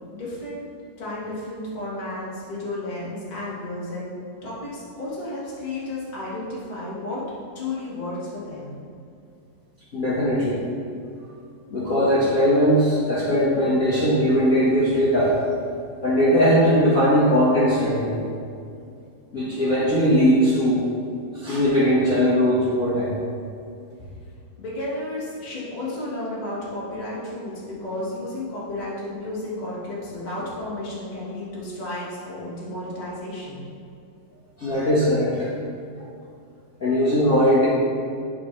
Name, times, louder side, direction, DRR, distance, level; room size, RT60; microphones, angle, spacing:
voice 1, 0.1-0.6 1.0-4.1 4.4-7.2 7.5-8.8 24.6-33.7, left 1 dB, 30° left, -8 dB, 0.7 m, -32 dB
voice 2, 9.9-10.6 11.7-15.4 16.0-18.1 19.3-20.8 21.3-23.1 34.6-35.5 36.8-37.7, equal, 65° left, -10 dB, 0.8 m, -19 dB
10.5 x 5.0 x 3.2 m, 2.4 s
omnidirectional pair, 3.9 m